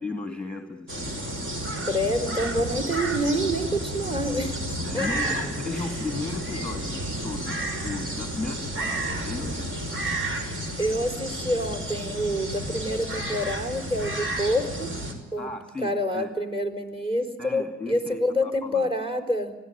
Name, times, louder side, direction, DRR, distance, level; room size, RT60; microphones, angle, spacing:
voice 1, 0.0-1.1 4.8-9.8 15.4-16.3 17.4-18.9, left 3 dB, 5° left, 5 dB, 2.9 m, -35 dB
sound 1, 0.9-15.1, right 1 dB, 40° right, 5.5 m, -31 dB
voice 2, 1.8-5.3 10.8-14.9 15.3-15.5 15.8-19.5, equal, 15° right, 6 dB, 4.6 m, -27 dB
25.5 x 18.0 x 9.1 m, 1.1 s
cardioid pair, 90°, 30 cm